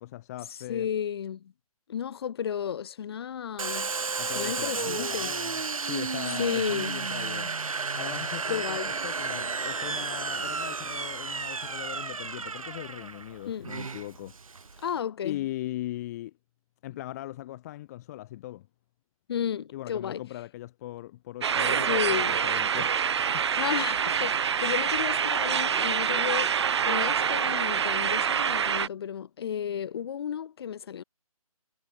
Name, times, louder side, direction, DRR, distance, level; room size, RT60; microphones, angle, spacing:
voice 1, 0.0-0.9 4.2-7.5 7.9-14.3 15.2-16.3 16.8-18.7 19.7-22.9 23.3-23.4, left 15 dB, 25° left, 1.7 m, -39 dB
voice 2, 0.7-1.5 1.9-3.9 4.2-5.3 6.4-6.9 8.4-8.9 13.5-13.7 14.8-15.4 19.3-20.2 21.9-22.4 23.6-26.5 26.8-31.0, left 8 dB, 40° left, 3.2 m, -33 dB
Domestic sounds home sounds, 3.6-15.0, right 4 dB, 65° right, 6.5 m, -33 dB
sound 1, 21.4-28.9, right 7 dB, 50° right, 0.8 m, -26 dB
figure-of-eight pair, 150°, 19 cm